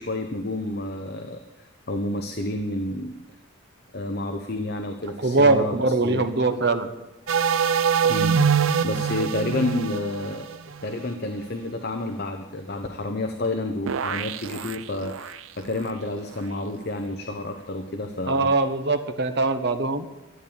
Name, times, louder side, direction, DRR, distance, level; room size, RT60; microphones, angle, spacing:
voice 1, 0.0-1.4 1.9-3.2 3.9-5.8 6.0-6.2 8.1-8.3 8.8-18.5, left 2 dB, 50° left, 5 dB, 0.9 m, -30 dB
voice 2, 5.2-6.9 18.3-20.1, right 3 dB, 50° right, 8 dB, 1.1 m, -22 dB
sound 1, 7.3-11.1 13.9-15.4, right 7 dB, 75° right, 0.5 m, -24 dB
13.0 x 8.9 x 8.8 m, 1.1 s
head